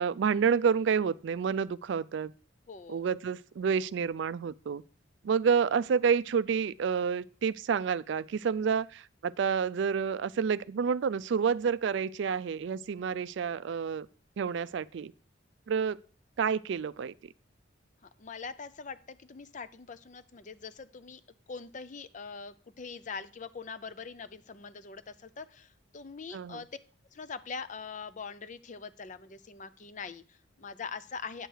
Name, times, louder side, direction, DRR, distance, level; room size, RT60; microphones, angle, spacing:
voice 1, 0.0-2.3 2.9-4.8 5.2-14.1 14.4-15.1 15.7-16.0 16.4-17.1 26.3-26.6, right 6 dB, 65° right, 0.3 m, -29 dB
voice 2, 2.7-3.0 18.2-21.2 21.5-26.7 27.1-31.5, left 5 dB, 40° left, 0.5 m, -43 dB
9.0 x 6.5 x 4.6 m
head